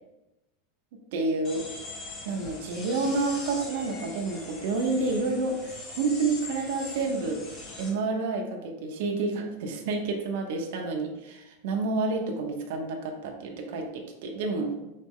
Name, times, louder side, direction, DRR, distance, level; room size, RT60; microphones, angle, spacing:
voice 1, 0.9-1.6 2.2-7.4 7.8-14.9, right 3 dB, 60° right, 1 dB, 0.7 m, -29 dB
sound 1, 1.4-7.9, left 3 dB, 25° left, 1.1 m, -41 dB
4.1 x 3.1 x 3.6 m, 0.96 s
supercardioid pair, 165°, 0 cm